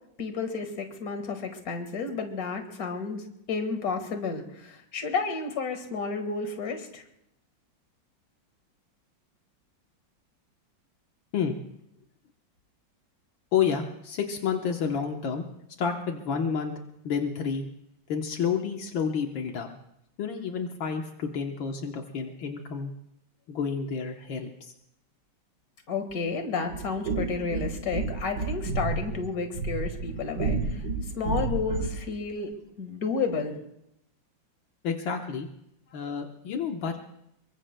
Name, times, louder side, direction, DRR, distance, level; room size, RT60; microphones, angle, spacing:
voice 1, 0.2-7.0 25.9-30.8 31.1-32.5 32.8-33.6, left 4 dB, 50° left, 6 dB, 2.1 m, -31 dB
voice 2, 13.5-15.5 15.8-16.7 17.0-17.7 18.1-19.7 20.2-22.9 23.5-24.7 34.8-35.5 35.9-37.0, left 6 dB, 75° left, 3 dB, 1.8 m, -30 dB
sound 1, 26.7-32.1, right 4 dB, 55° right, 1.9 m, -31 dB
25.5 x 23.0 x 2.2 m, 0.78 s
omnidirectional pair, 2.1 m